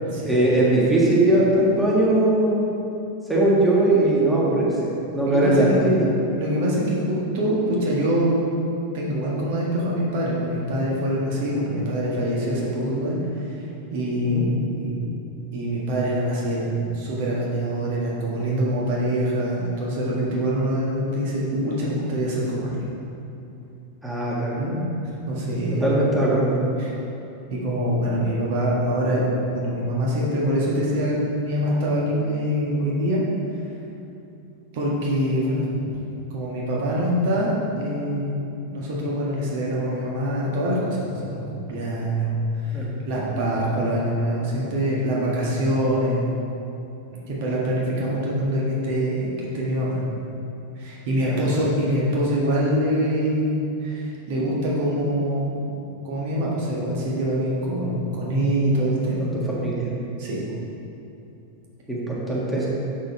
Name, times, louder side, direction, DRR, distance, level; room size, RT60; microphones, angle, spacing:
voice 1, 0.2-2.7 3.3-6.0 14.2-14.5 24.0-24.6 25.7-26.6 42.7-42.9 51.3-51.4 59.2-59.3 59.6-59.9 61.9-62.7, right 1 dB, 5° right, -7 dB, 1.7 m, -20 dB
voice 2, 5.3-5.7 6.4-8.4 8.9-13.2 13.4-13.5 13.9-14.4 14.7-14.9 15.5-22.7 24.6-24.8 25.3-25.9 26.8-26.9 27.5-29.2 29.5-33.2 34.7-35.9 36.3-42.4 42.6-46.3 47.3-50.0 50.8-55.7 56.0-59.2 60.2-60.4, equal, 50° right, -5 dB, 1.5 m, -24 dB
6.6 x 6.4 x 4.4 m, 2.8 s
figure-of-eight pair, 90°, 0 cm